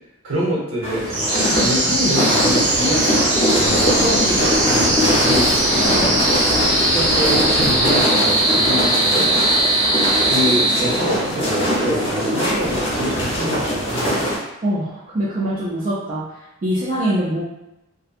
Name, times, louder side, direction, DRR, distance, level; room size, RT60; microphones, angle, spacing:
voice 1, 0.2-1.2 1.6-6.3 6.9-9.5 10.2-14.2, equal, 60° right, -5 dB, 0.9 m, -26 dB
sound 1, 0.8-14.4, equal, 25° left, 0.7 m, -21 dB
sound 2, 1.1-11.3, right 1 dB, 80° right, 1.3 m, -20 dB
sound 3, 3.7-8.1, left 3 dB, 65° left, 0.4 m, -30 dB
voice 2, 14.6-16.2 16.6-17.4, right 1 dB, 35° right, -8 dB, 0.4 m, -23 dB
2.6 x 2.2 x 2.4 m, 0.91 s
head